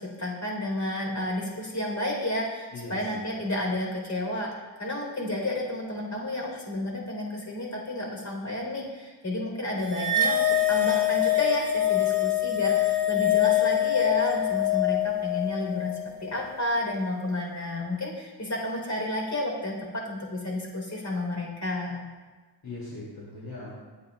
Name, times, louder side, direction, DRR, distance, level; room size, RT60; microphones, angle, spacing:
voice 1, 0.2-4.5 4.8-22.0, left 1 dB, 40° left, -1 dB, 4.9 m, -31 dB
voice 2, 2.7-3.5 22.6-23.8, left 2 dB, 55° left, -6 dB, 3.3 m, -40 dB
sound 1, 9.9-16.5, left 9 dB, 45° right, 1.4 m, -24 dB
27.0 x 9.7 x 2.7 m, 1.3 s
wide cardioid pair, 105°, 45 cm